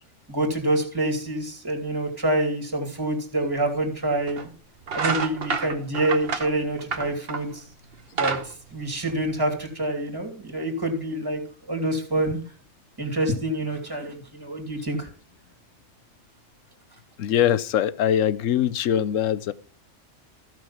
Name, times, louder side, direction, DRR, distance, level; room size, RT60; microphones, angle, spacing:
voice 1, 0.3-4.4 4.9-7.6 8.2-11.4 11.7-12.4 13.0-15.1, right 1 dB, 15° right, 3 dB, 2.5 m, -26 dB
sound 1, 3.5-3.6 4.3-4.5 4.8-7.6 7.9-9.6, right 5 dB, 50° right, 1.2 m, -29 dB
voice 2, 17.2-19.5, left 10 dB, 80° left, 14 dB, 1.1 m, -22 dB
14.5 x 6.2 x 5.7 m, 0.40 s
omnidirectional pair, 1.3 m